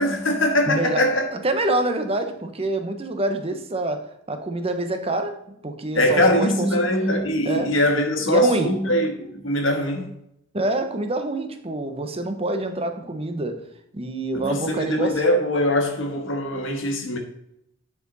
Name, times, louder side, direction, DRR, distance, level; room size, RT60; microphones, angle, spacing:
voice 1, 0.0-1.3 5.9-10.1 14.3-17.2, left 1 dB, 70° left, 1.5 m, -22 dB
voice 2, 0.7-6.9 7.4-7.8 8.3-8.8 10.5-13.6 13.9-15.2, right 2 dB, 30° right, 0.8 m, -26 dB
9.7 x 4.7 x 4.0 m
head